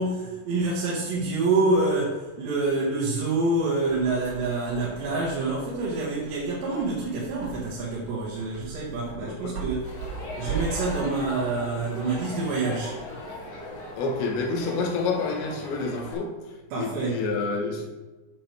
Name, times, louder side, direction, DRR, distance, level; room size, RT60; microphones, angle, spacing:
voice 1, 0.0-9.9 10.4-12.9 16.7-17.2, right 3 dB, 90° right, -6 dB, 3.8 m, -27 dB
sound 1, 3.8-14.6, right 5 dB, 60° right, 3.0 m, -40 dB
voice 2, 9.1-9.7 10.3-10.4 14.0-17.9, left 3 dB, 70° left, 0 dB, 3.0 m, -29 dB
Crowd, 9.8-16.1, left 1 dB, 50° left, 2.4 m, -39 dB
9.6 x 7.4 x 3.4 m, 1.2 s
omnidirectional pair, 4.9 m